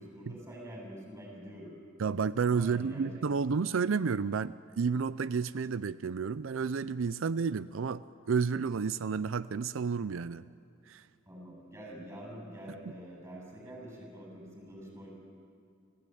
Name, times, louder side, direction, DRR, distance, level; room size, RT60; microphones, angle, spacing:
voice 1, 0.0-1.7 2.5-3.5 11.3-15.1, equal, 15° right, -1 dB, 7.8 m, -46 dB
voice 2, 2.0-10.4 10.9-11.0, right 5 dB, 85° right, 16 dB, 0.5 m, -31 dB
30.0 x 15.5 x 9.3 m, 2.5 s
head